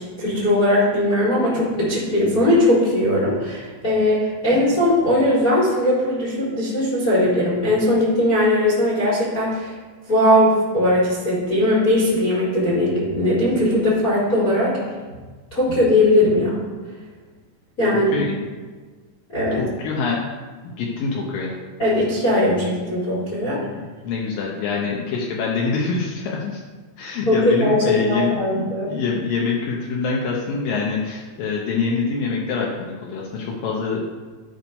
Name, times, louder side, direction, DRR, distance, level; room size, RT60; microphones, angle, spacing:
voice 1, 0.0-9.7 10.1-14.7 15.5-16.7 17.8-18.1 19.3-19.6 21.8-23.6 27.3-28.9, left 1 dB, 30° left, -7 dB, 1.9 m, -19 dB
voice 2, 19.6-20.2 20.6-21.6 23.5-26.6 27.0-34.1, left 4 dB, 85° left, -2 dB, 2.0 m, -25 dB
12.0 x 4.7 x 5.3 m, 1.4 s
omnidirectional pair, 5.4 m